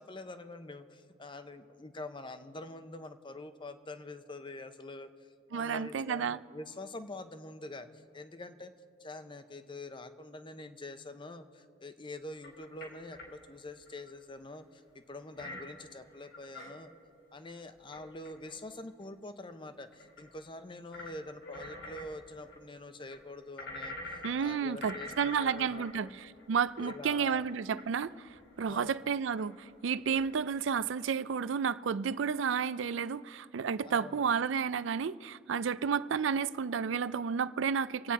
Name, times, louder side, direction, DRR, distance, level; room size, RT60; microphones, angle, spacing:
voice 1, 0.0-8.7 9.0-16.9 17.3-26.1 26.8-27.5 28.6-29.1 33.8-34.4, left 2 dB, 25° left, 0.7 m, -46 dB
voice 2, 5.5-6.4 24.2-28.1 28.6-38.1, right 6 dB, 75° right, 0.4 m, -31 dB
sound 1, 12.4-13.3 13.9-14.1 15.3-16.7 17.6-18.6 19.0-19.1 19.9-20.3 20.9-21.1 21.4-22.6 23.1-24.5 24.8-29.0 29.4-29.7 30.1-30.6, left 2 dB, 80° left, 4.3 m, -46 dB
26.0 x 9.0 x 4.2 m
head